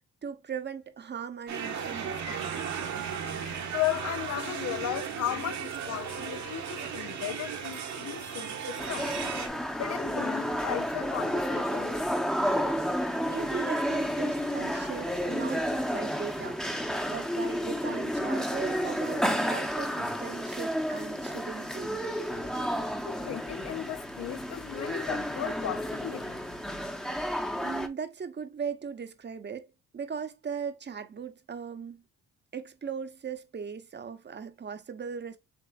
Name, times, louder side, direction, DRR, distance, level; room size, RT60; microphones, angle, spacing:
voice 1, 0.2-2.7 13.3-21.9 27.6-29.7 29.9-32.0 32.5-35.4, right 6 dB, 35° right, 0.9 m, -38 dB
sound 1, 1.5-9.5, right 7 dB, 65° right, 1.4 m, -36 dB
voice 2, 3.7-9.1 9.8-12.1 23.0-26.4, left 13 dB, 60° left, 0.5 m, -35 dB
sound 2, 8.8-27.9, equal, ahead, 0.8 m, -31 dB
6.8 x 3.3 x 2.3 m
cardioid pair, 90°, 30 cm